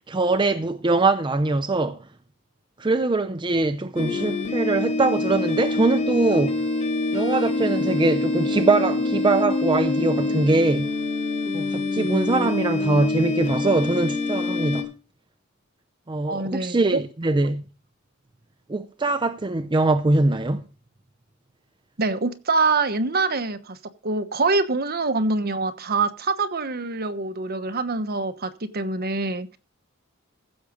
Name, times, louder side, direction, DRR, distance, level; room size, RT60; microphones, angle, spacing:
voice 1, 0.1-2.0 2.8-6.6 7.1-10.9 11.5-14.9 16.1-17.6 18.7-20.6, right 2 dB, 25° right, 0.6 m, -22 dB
sound 1, 4.0-14.8, left 2 dB, 35° left, 2.4 m, -25 dB
voice 2, 16.3-17.0 22.0-23.8 24.0-29.6, right 3 dB, 50° right, 1.1 m, -25 dB
15.5 x 7.0 x 5.1 m
head